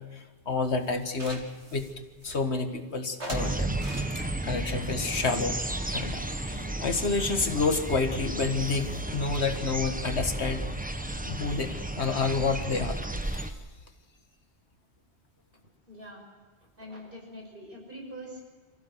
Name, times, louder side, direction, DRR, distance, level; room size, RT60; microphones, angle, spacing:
voice 1, 0.1-1.4 1.7-3.8 4.1-5.6 5.9-10.6 11.3-13.6, left 4 dB, 75° left, 6 dB, 1.9 m, -29 dB
sound 1, 0.6-2.7 3.2-4.5 5.1-6.3 6.6-6.7 7.0-7.1 7.3-11.2, right 2 dB, 85° right, 3.3 m, -46 dB
sound 2, 3.3-13.5, right 1 dB, 10° right, 1.0 m, -33 dB
voice 2, 15.9-16.2 16.8-18.4, equal, 50° right, -1 dB, 6.2 m, -43 dB
25.5 x 15.0 x 7.9 m, 1.5 s
omnidirectional pair, 1.1 m